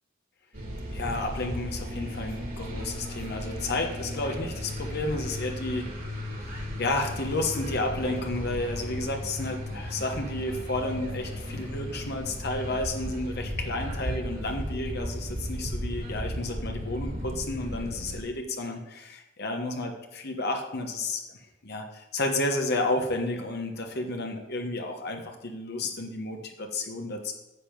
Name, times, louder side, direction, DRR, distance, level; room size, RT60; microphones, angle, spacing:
sound 1, 0.5-18.2, left 1 dB, 45° right, 2.3 m, -35 dB
voice 1, 0.9-21.2 21.6-27.3, left 2 dB, 55° left, 3 dB, 1.1 m, -32 dB
9.8 x 7.5 x 5.3 m, 0.98 s
head